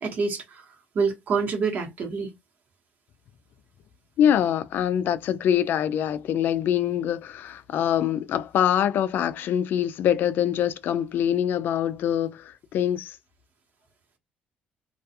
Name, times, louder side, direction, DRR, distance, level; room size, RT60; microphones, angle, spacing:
voice 1, 0.0-2.3, right 5 dB, 55° right, 1.1 m, -27 dB
voice 2, 4.2-13.1, left 10 dB, 65° left, 0.3 m, -24 dB
2.3 x 2.2 x 2.7 m
cardioid pair, 105°, 4 cm